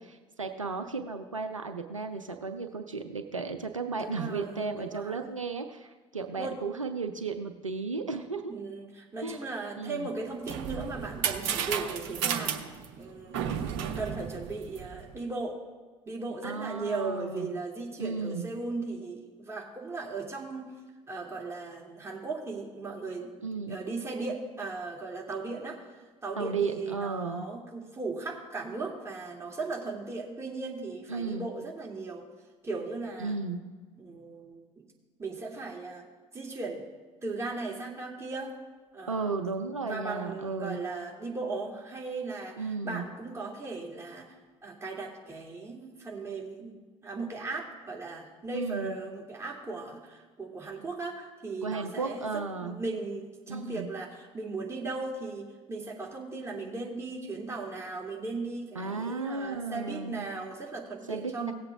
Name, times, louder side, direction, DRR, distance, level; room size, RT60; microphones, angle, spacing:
voice 1, 0.0-8.5 9.2-9.4 9.8-10.1 16.4-17.5 18.0-18.4 23.4-23.8 26.4-27.5 31.1-31.5 33.2-33.6 39.1-40.8 42.6-43.1 48.5-49.0 51.6-52.8 53.5-53.9 58.7-60.3 61.1-61.5, right 4 dB, 90° right, 7 dB, 0.5 m, -34 dB
voice 2, 4.0-5.3 6.4-6.6 8.5-12.6 13.0-15.6 16.1-20.7 21.1-23.4 23.7-32.2 32.6-33.3 34.0-34.7 35.2-36.0 36.3-36.9 37.2-38.6 38.9-39.4 39.8-46.8 47.0-61.5, right 3 dB, 15° right, -2 dB, 2.4 m, -37 dB
sound 1, 10.1-15.2, right 8 dB, 60° right, 0.9 m, -33 dB
17.5 x 7.8 x 3.4 m, 1.4 s
figure-of-eight pair, 60°, 16 cm